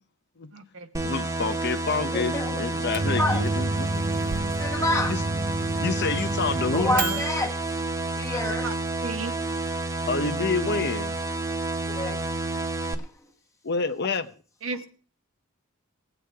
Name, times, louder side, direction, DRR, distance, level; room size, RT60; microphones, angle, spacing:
voice 1, 0.5-0.9 8.3-8.7 9.0-9.3 14.6-14.8, right 4 dB, 65° right, 1.2 m, -34 dB
sound 1, 0.9-12.9, right 2 dB, 15° right, 0.8 m, -30 dB
voice 2, 1.0-4.1 5.1-5.2 5.8-7.2 10.1-11.2 13.6-14.3, left 4 dB, 55° left, 0.9 m, -28 dB
voice 3, 2.1-2.6 3.2-3.4 4.6-5.2 6.5-7.6 8.2-8.7 11.9-12.2 13.0-13.1, left 1 dB, 15° left, 1.4 m, -28 dB
Microwave oven, 2.7-7.5, right 3 dB, 40° right, 0.6 m, -30 dB
20.0 x 8.1 x 3.5 m
head